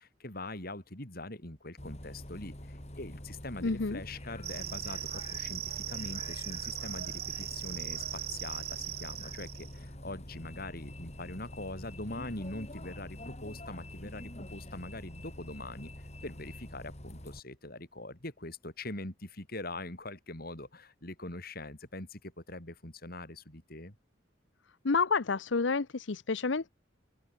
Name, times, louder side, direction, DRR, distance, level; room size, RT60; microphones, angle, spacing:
voice 1, 0.0-15.9 16.2-24.0, left 2 dB, 50° left, 5.3 m, -43 dB
Bus, 1.8-17.4, left 1 dB, 35° left, 5.4 m, -46 dB
voice 2, 3.6-4.0 24.8-26.7, left 4 dB, 70° left, 0.8 m, -29 dB
sound 1, 4.4-9.8, right 13 dB, 55° right, 2.4 m, -39 dB
open air
head